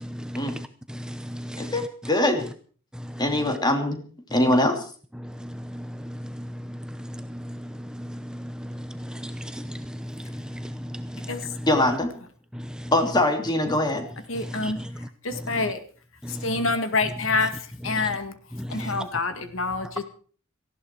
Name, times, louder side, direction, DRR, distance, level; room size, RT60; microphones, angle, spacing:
voice 1, 0.0-1.7 2.9-3.2 5.2-11.3 12.5-12.9 14.6-14.7 16.2-16.4 18.6-18.9, equal, 5° right, 0.8 m, -36 dB
voice 2, 1.6-2.5 3.2-4.0 4.3-4.8 11.6-12.1 12.9-14.0, left 1 dB, 20° left, 2.9 m, -22 dB
voice 3, 14.3-15.8 16.3-18.4 18.7-20.0, left 3 dB, 70° left, 2.0 m, -27 dB
18.0 x 15.5 x 4.7 m
head